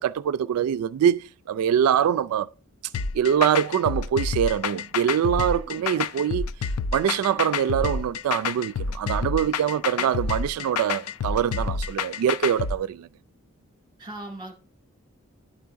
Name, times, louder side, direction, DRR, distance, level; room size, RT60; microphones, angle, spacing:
voice 1, 0.0-2.5 3.1-6.4 6.9-13.1, right 9 dB, 90° right, 0.3 m, -24 dB
sound 1, 2.9-12.7, left 5 dB, 85° left, 0.4 m, -28 dB
voice 2, 5.5-6.1 9.8-10.1 10.6-10.7 14.0-14.5, right 2 dB, 20° right, 2.2 m, -41 dB
11.5 x 4.6 x 2.5 m
head